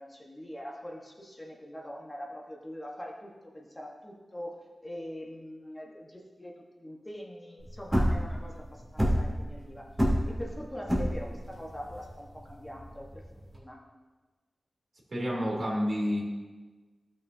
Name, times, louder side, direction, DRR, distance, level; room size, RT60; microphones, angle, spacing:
voice 1, 0.0-4.5 4.8-9.9 10.2-13.2 13.5-13.8, equal, 20° left, -2 dB, 1.2 m, -43 dB
sound 1, 7.6-13.6, equal, 5° right, 2.6 m, -28 dB
voice 2, 15.1-16.2, equal, 55° right, -3 dB, 2.8 m, -29 dB
16.5 x 6.3 x 2.7 m, 1.3 s
wide cardioid pair, 115°, 0 cm